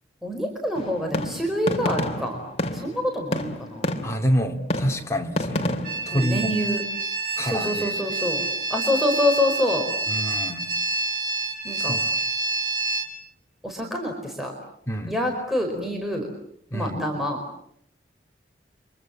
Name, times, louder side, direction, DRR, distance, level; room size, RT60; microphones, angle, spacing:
voice 1, 0.2-2.4 2.7-3.9 6.1-6.8 7.4-8.4 8.7-9.8 11.6-12.0 13.6-14.5 15.1-16.3 16.7-17.4, left 1 dB, ahead, 1 dB, 4.9 m, -26 dB
sound 1, 0.7-4.3 4.7-6.1, left 1 dB, 35° left, 2.9 m, -29 dB
voice 2, 4.0-5.8 6.1-6.5 7.4-7.9 10.1-10.7 11.8-12.1 14.9-15.1 16.7-17.0, equal, 15° left, 2 dB, 2.9 m, -27 dB
sound 2, 5.8-13.1, right 3 dB, 45° right, 6.6 m, -27 dB
30.0 x 26.0 x 7.5 m, 0.69 s
head